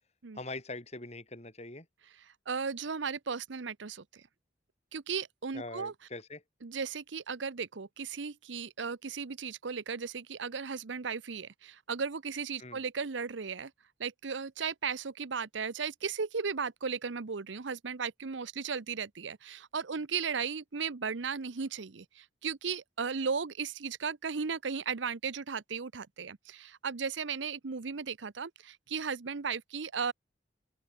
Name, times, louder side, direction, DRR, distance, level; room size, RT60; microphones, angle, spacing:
voice 1, 0.3-1.9 5.5-6.4 12.6-12.8, left 2 dB, 35° left, 5.0 m, -42 dB
voice 2, 2.5-4.2 4.9-5.9 6.6-13.7 14.0-30.1, right 5 dB, 80° right, 0.8 m, -36 dB
open air
head